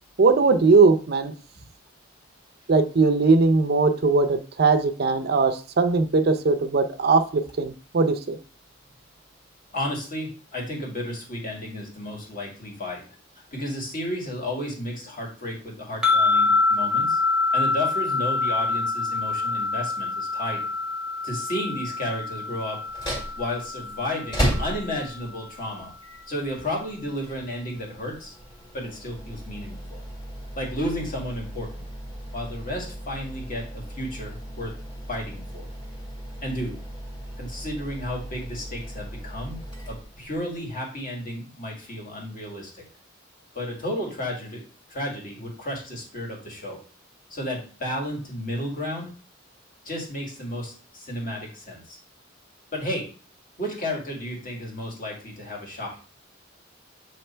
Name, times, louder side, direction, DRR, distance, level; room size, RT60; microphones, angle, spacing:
voice 1, 0.2-1.3 2.7-8.4, right 4 dB, 50° right, 8 dB, 0.5 m, -20 dB
voice 2, 9.7-13.0 13.5-17.2 17.5-20.7 21.2-22.8 23.3-25.9 26.3-28.3 28.7-30.0 30.6-31.8 32.3-34.7 35.1-35.7 36.4-36.7 37.4-39.6 39.9-42.8 43.6-44.6 44.9-46.8 47.3-49.1 49.9-52.0 52.7-53.1 53.6-56.0, left 1 dB, 45° left, -1 dB, 2.0 m, -32 dB
sound 1, 16.0-25.3, left 4 dB, 5° right, 1.0 m, -26 dB
sound 2, 22.9-40.6, equal, 25° left, 1.9 m, -35 dB
7.0 x 3.3 x 4.3 m, 0.38 s
head